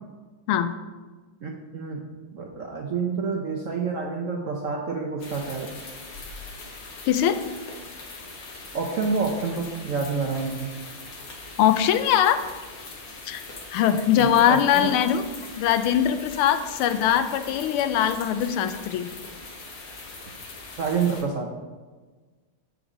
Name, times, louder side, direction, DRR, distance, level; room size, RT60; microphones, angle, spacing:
voice 1, 1.4-2.0 2.3-5.7 8.7-10.7 14.2-15.0 20.8-21.5, right 5 dB, 70° right, 0 dB, 0.7 m, -28 dB
sound 1, 5.2-21.2, left 3 dB, 60° left, 1.7 m, -41 dB
voice 2, 7.1-7.4 11.6-12.4 13.3-13.4 13.7-15.2 15.6-19.1, left 10 dB, 90° left, 10 dB, 1.5 m, -21 dB
8.0 x 5.0 x 4.9 m, 1.3 s
omnidirectional pair, 2.3 m